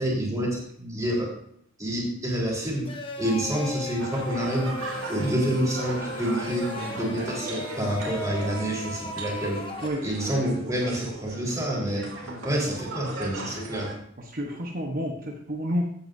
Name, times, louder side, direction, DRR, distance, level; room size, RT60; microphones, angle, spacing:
voice 1, 0.0-1.3 1.8-2.9 3.2-4.8 5.1-9.6 10.0-12.1 12.4-13.9, right 1 dB, 15° right, -4 dB, 4.2 m, -28 dB
sound 1, 2.8-9.9, left 1 dB, 25° left, 1.2 m, -37 dB
sound 2, 4.0-14.0, right 2 dB, 90° right, 2.9 m, -38 dB
voice 2, 6.5-7.0 9.8-10.1 12.2-12.4 14.3-15.8, equal, 45° right, -1 dB, 1.1 m, -31 dB
15.5 x 8.7 x 2.7 m, 0.65 s
head